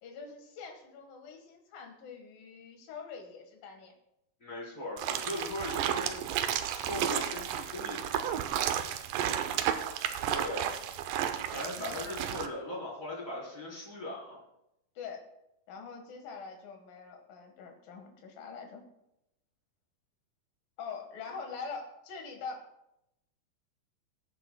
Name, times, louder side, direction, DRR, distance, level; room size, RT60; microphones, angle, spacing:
voice 1, 0.0-3.9 9.2-9.4 11.8-12.0 15.0-15.2 15.7-18.8 20.8-22.7, left 5 dB, 75° left, 3 dB, 3.3 m, -44 dB
voice 2, 4.4-6.2 6.6-8.3 10.3-10.7 11.5-14.4, left 1 dB, 25° left, -6 dB, 4.4 m, -39 dB
sound 1, 5.0-12.5, right 10 dB, 75° right, 2.2 m, -32 dB
22.0 x 9.0 x 2.3 m, 0.85 s
omnidirectional pair, 4.2 m